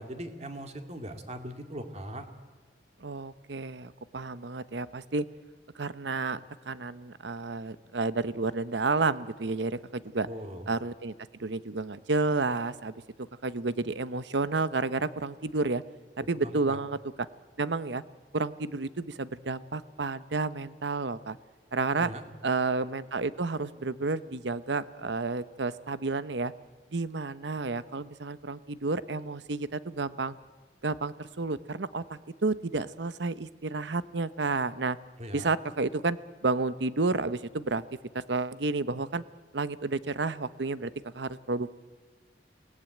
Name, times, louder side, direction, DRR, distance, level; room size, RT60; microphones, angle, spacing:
voice 1, 0.0-2.3 10.3-10.6 16.3-16.8 22.0-22.2 35.2-35.5, equal, 40° right, 6 dB, 2.4 m, -40 dB
voice 2, 3.0-5.2 5.7-6.4 6.6-10.3 10.7-11.1 11.4-12.9 13.4-15.8 16.3-17.0 17.6-18.0 18.3-21.4 21.7-22.1 22.4-26.5 26.9-30.3 30.8-35.0 35.3-36.2 36.4-37.8 38.3-39.2 39.5-41.7, right 3 dB, 75° right, 15 dB, 0.9 m, -31 dB
28.0 x 19.0 x 9.1 m, 1.5 s
head